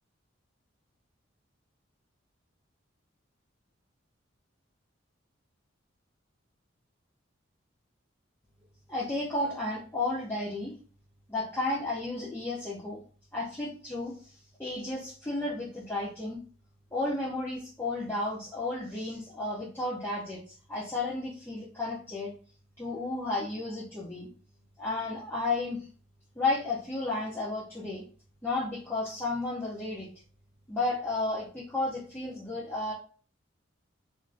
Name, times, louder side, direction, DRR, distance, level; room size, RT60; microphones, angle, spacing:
voice 1, 8.9-10.7 11.3-13.0 13.3-16.4 16.9-22.3 22.8-24.3 24.8-25.9 26.4-28.0 28.4-30.1 30.7-32.9, left 2 dB, 10° left, -7 dB, 0.5 m, -33 dB
3.4 x 2.5 x 2.4 m, 0.42 s
head